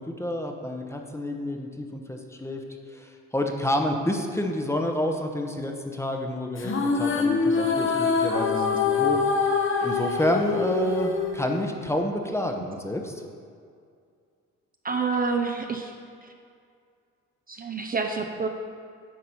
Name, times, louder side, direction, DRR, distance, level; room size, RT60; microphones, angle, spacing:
voice 1, 0.0-2.6 2.9-9.2 9.8-13.1, left 1 dB, 10° left, 3 dB, 0.8 m, -29 dB
sound 1, 6.6-12.0, left 5 dB, 40° left, 1.0 m, -25 dB
voice 2, 14.8-15.9 17.5-18.5, right 4 dB, 30° right, 3 dB, 0.6 m, -27 dB
9.4 x 4.2 x 5.9 m, 2.2 s
cardioid pair, 90°, 30 cm